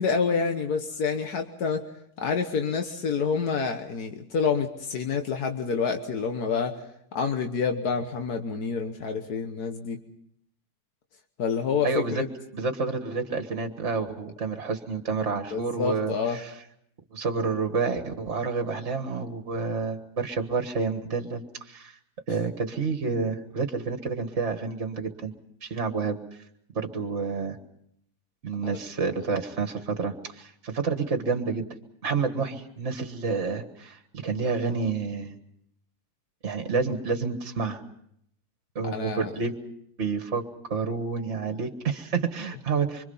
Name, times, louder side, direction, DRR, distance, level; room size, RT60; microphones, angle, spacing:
voice 1, 0.0-1.8 2.2-6.8 7.2-10.0 11.4-12.3 15.5-16.4 28.6-28.8 38.9-39.3, left 5 dB, 85° left, 5 dB, 1.8 m, -28 dB
voice 2, 11.8-12.2 12.5-16.5 17.1-22.0 22.3-25.3 25.6-26.2 26.7-27.6 28.4-31.6 32.0-35.3 36.4-37.8 38.8-39.5 40.0-40.4 40.7-43.0, right 4 dB, 50° right, 6 dB, 1.9 m, -29 dB
25.5 x 25.0 x 5.6 m, 0.72 s
omnidirectional pair, 1.6 m